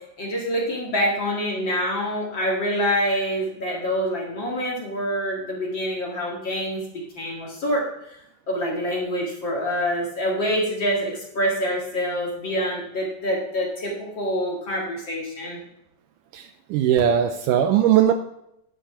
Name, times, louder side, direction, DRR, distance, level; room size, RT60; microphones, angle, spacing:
voice 1, 0.2-7.8 8.5-15.6, equal, 40° left, -3 dB, 2.1 m, -26 dB
voice 2, 16.3-18.1, right 10 dB, 80° right, 7 dB, 2.0 m, -19 dB
10.5 x 5.8 x 5.6 m, 0.78 s
omnidirectional pair, 4.0 m